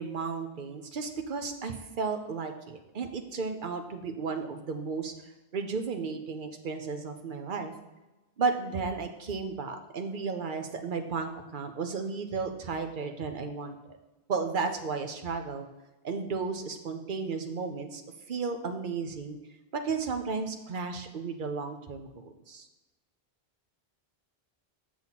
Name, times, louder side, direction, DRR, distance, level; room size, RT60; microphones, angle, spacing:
voice 1, 0.0-5.1 5.5-7.7 8.4-14.0 14.3-15.7 16.0-18.0 18.3-19.4 19.7-22.1 22.5-22.7, right 4 dB, 55° right, 6 dB, 0.9 m, -33 dB
7.3 x 6.2 x 4.1 m, 1.1 s
omnidirectional pair, 1.1 m